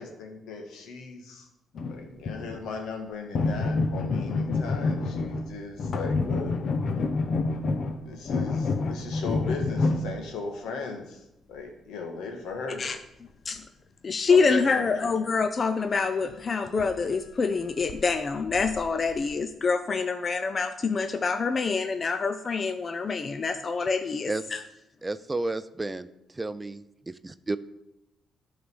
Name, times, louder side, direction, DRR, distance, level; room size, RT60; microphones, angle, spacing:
voice 1, 0.0-1.5 1.9-6.6 8.0-11.2 11.5-12.8 14.3-15.1, left 4 dB, 85° left, 3 dB, 1.7 m, -37 dB
sound 1, 1.7-2.6 3.3-5.5 5.8-10.1 16.3-16.4 16.8-16.9 17.3-17.4 17.8-18.0 18.4-19.3, left 3 dB, 60° left, 0.8 m, -28 dB
voice 2, 14.0-24.6, left 4 dB, 40° left, 9 dB, 0.5 m, -26 dB
voice 3, 25.0-26.1 26.3-27.6, right 2 dB, 20° right, 14 dB, 0.4 m, -32 dB
11.0 x 4.0 x 6.2 m, 0.86 s
cardioid pair, 90°, 0 cm